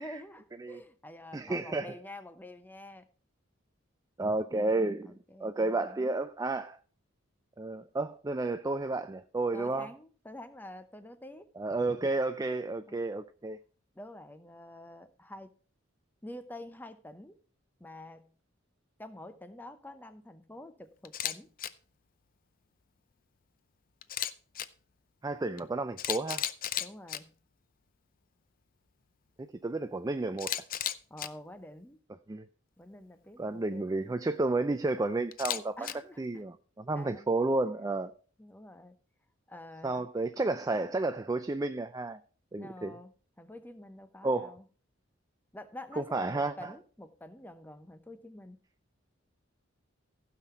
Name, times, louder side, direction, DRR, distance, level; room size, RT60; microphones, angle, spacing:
voice 1, 0.0-3.1 5.1-6.1 9.5-11.5 12.9-13.0 14.0-15.5 16.2-17.4 17.8-18.3 19.0-21.5 26.8-27.4 31.1-32.0 32.8-34.1 35.8-36.4 36.9-37.3 38.4-39.0 39.5-40.1 40.4-40.8 42.6-44.7 45.5-48.6, left 1 dB, 10° left, 0.8 m, -48 dB
voice 2, 1.3-1.9 4.2-5.1 5.4-6.8 7.6-9.9 11.6-13.6 25.2-26.5 29.4-30.5 32.3-32.5 33.4-35.8 36.2-38.1 39.8-42.2 42.5-43.0 44.2-44.5 46.0-46.7, right 2 dB, 15° right, 0.4 m, -31 dB
Camera, 21.0-21.3 21.6-21.7 24.0-24.7 25.6-25.7 26.0-27.2 30.4-31.3 35.3-35.9, left 11 dB, 45° left, 0.5 m, -33 dB
15.5 x 5.9 x 4.4 m
head